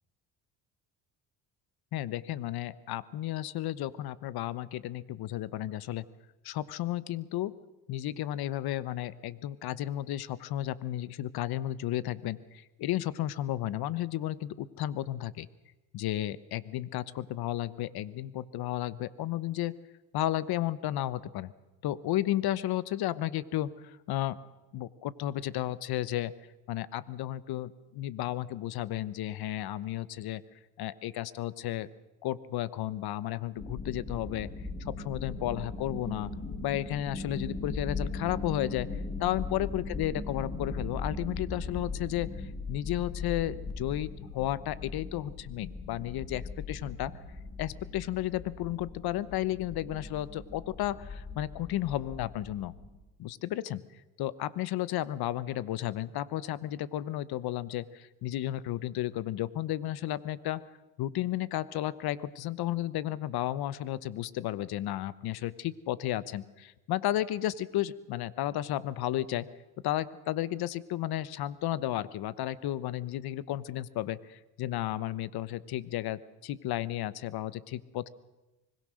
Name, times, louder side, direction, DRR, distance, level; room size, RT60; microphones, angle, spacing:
voice 1, 1.9-6.1 6.4-7.5 7.9-15.5 15.9-19.8 20.1-21.5 21.8-24.4 24.7-26.3 26.7-30.4 30.8-31.9 32.2-34.5 34.8-36.3 36.6-38.9 39.2-47.1 47.6-52.7 53.2-53.8 54.2-60.6 61.0-69.5 69.8-78.1, left 13 dB, 70° left, 18 dB, 1.1 m, -33 dB
sound 1, 33.6-53.0, left 3 dB, 25° left, 6.0 m, -39 dB
25.0 x 20.5 x 6.4 m, 1.0 s
supercardioid pair, 85°, 39 cm